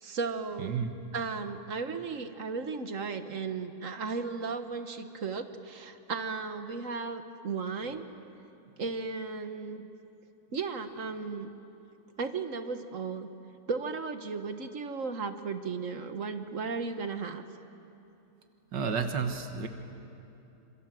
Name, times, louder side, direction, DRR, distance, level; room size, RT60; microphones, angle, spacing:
voice 1, 0.0-0.8 1.1-8.0 8.8-9.9 10.5-11.5 12.2-13.3 13.7-17.4, right 4 dB, 50° right, 8 dB, 1.6 m, -35 dB
voice 2, 0.6-0.9 18.7-19.7, right 6 dB, 90° right, 6 dB, 2.0 m, -31 dB
27.5 x 27.5 x 7.7 m, 2.9 s
omnidirectional pair, 1.8 m